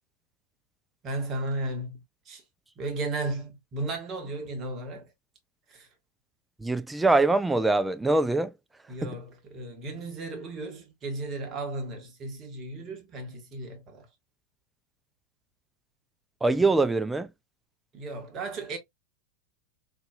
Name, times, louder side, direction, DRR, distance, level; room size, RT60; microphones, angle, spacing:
voice 1, 1.0-2.4 2.8-5.1 5.7-5.9 8.9-14.1 17.9-18.8, right 2 dB, 30° right, 1.1 m, -35 dB
voice 2, 6.6-8.5 9.0-9.2 16.4-17.3, right 2 dB, 10° right, 0.4 m, -23 dB
3.9 x 2.6 x 2.3 m
figure-of-eight pair, 90°, 0 cm